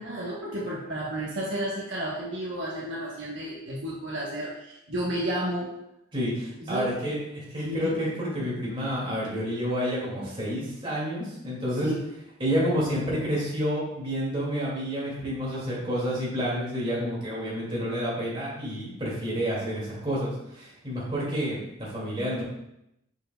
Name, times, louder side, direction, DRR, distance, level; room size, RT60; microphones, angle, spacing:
voice 1, 0.0-5.7 6.6-7.0 7.6-8.0 11.8-12.0, right 1 dB, 60° right, -6 dB, 1.1 m, -32 dB
voice 2, 6.1-11.9 12.4-22.4, equal, 25° right, -6 dB, 2.3 m, -29 dB
6.9 x 6.1 x 2.3 m, 0.83 s
head